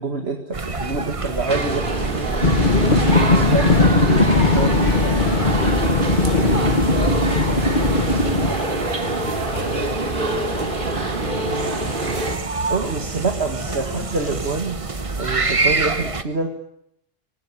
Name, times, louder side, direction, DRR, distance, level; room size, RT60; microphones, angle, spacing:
voice 1, 0.0-1.9 3.2-3.6 3.9-4.8 12.7-14.8 15.2-16.5, right 3 dB, 80° right, 4 dB, 2.3 m, -26 dB
sound 1, 0.5-16.2, right 3 dB, 35° right, 1.2 m, -28 dB
sound 2, 1.5-12.4, right 1 dB, 55° right, 3.0 m, -25 dB
sound 3, 2.4-8.5, left 2 dB, 50° left, 2.1 m, -18 dB
voice 2, 3.4-5.2 5.5-7.0 7.3-8.8 9.2-10.6 11.4-12.0 13.1-14.5, left 1 dB, 85° left, 3 dB, 7.4 m, -38 dB
23.5 x 18.5 x 9.9 m, 0.77 s
omnidirectional pair, 1.0 m